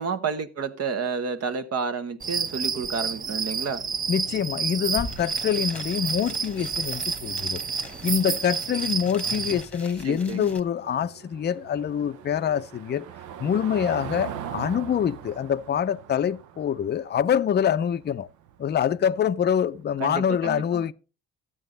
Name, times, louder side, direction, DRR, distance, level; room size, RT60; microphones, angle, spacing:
voice 1, 0.0-3.8 10.0-10.5 20.0-20.9, right 5 dB, 55° right, 1.2 m, -30 dB
sound 1, 2.2-9.6, right 5 dB, 30° right, 0.6 m, -30 dB
voice 2, 4.1-7.6 8.0-13.1 13.4-18.3 18.6-20.9, left 8 dB, 35° left, 0.5 m, -25 dB
sound 2, 4.6-4.7 4.8-10.6, left 1 dB, 5° left, 1.3 m, -42 dB
Car passing by / Engine, 9.0-19.7, right 9 dB, 80° right, 0.8 m, -41 dB
13.0 x 8.8 x 3.9 m
cardioid pair, 90°, 30 cm